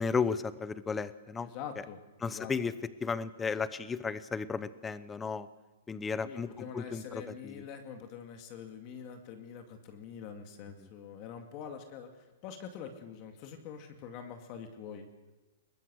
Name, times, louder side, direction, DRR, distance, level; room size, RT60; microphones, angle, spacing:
voice 1, 0.0-1.5 2.2-2.7 3.0-5.5 5.9-6.5 6.7-7.6, left 5 dB, 10° left, 15 dB, 0.8 m, -34 dB
voice 2, 1.4-2.5 6.2-15.1, left 7 dB, 35° left, 5 dB, 2.3 m, -45 dB
21.5 x 19.5 x 6.4 m, 1.2 s
hypercardioid pair, 155°, 0 cm